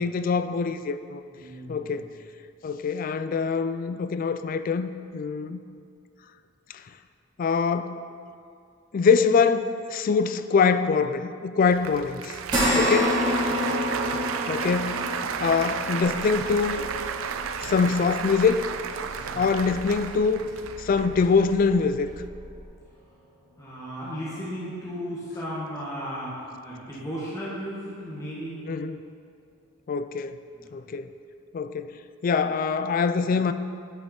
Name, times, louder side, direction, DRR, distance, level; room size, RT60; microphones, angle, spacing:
voice 1, 0.0-1.2 1.7-2.1 2.6-5.6 7.4-8.0 8.9-12.4 12.8-13.2 14.5-15.1 15.4-16.9 17.6-18.6 19.3-20.5 20.8-22.1 28.7-29.0 29.9-30.4 30.7-31.1 31.5-31.9 32.2-33.5, left 5 dB, 45° left, 11 dB, 0.3 m, -24 dB
voice 2, 1.3-2.0 13.5-14.2 19.2-19.5 23.6-28.6 30.5-30.7, equal, 15° left, -9 dB, 1.7 m, -36 dB
Applause, 11.7-22.3, right 7 dB, 80° right, 0.4 m, -33 dB
sound 1, 12.5-21.1 21.5-21.7 23.1-23.2, equal, 20° right, 2.1 m, -30 dB
Car / Engine, 16.0-22.6, equal, 55° right, 1.9 m, -46 dB
9.6 x 5.6 x 4.4 m, 2.3 s
head